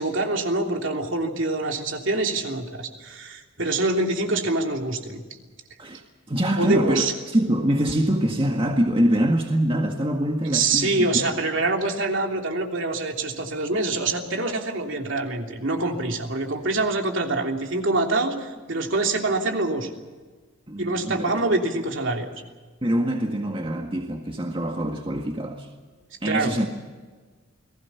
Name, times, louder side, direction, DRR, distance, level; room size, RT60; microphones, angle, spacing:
voice 1, 0.0-5.2 6.6-7.1 10.4-19.9 20.8-22.3 26.2-26.5, right 2 dB, 60° right, 3.2 m, -25 dB
voice 2, 6.3-11.2 20.7-21.1 22.8-25.7 26.2-26.7, right 1 dB, 25° right, 1.7 m, -24 dB
29.5 x 20.0 x 5.8 m
head